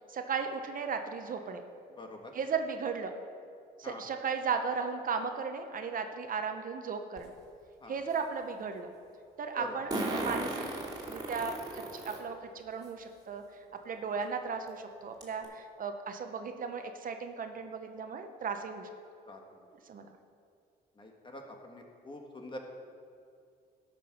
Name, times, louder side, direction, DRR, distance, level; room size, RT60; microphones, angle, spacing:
voice 1, 0.1-1.6 2.3-3.1 3.8-7.3 7.9-8.9 9.4-10.6 11.1-13.4 13.8-18.9 19.9-20.1, right 5 dB, 50° right, 6 dB, 0.9 m, -36 dB
voice 2, 2.0-2.3 3.8-4.0 7.8-8.0 9.5-9.8 14.1-14.2 19.3-19.7 21.0-22.6, left 1 dB, 25° left, 2 dB, 1.5 m, -45 dB
Fart, 7.2-7.3 9.9-12.2 12.8-12.9 14.2-14.3 14.7-14.8 15.2-15.4, right 2 dB, 20° right, 2.5 m, -35 dB
13.0 x 6.1 x 5.7 m, 2.4 s
cardioid pair, 100°, 18 cm